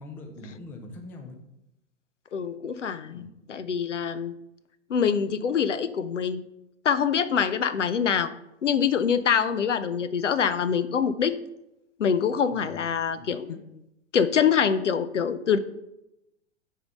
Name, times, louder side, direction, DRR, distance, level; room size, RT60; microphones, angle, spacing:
voice 1, 0.0-1.4 3.1-3.3 12.5-12.9 13.2-13.6, left 2 dB, 5° left, 4 dB, 0.3 m, -43 dB
voice 2, 2.3-4.3 4.9-6.4 6.8-8.3 8.6-11.4 12.0-13.6 14.1-15.6, left 7 dB, 80° left, 14 dB, 0.6 m, -25 dB
6.7 x 3.7 x 5.4 m, 0.87 s
figure-of-eight pair, 100°, 36 cm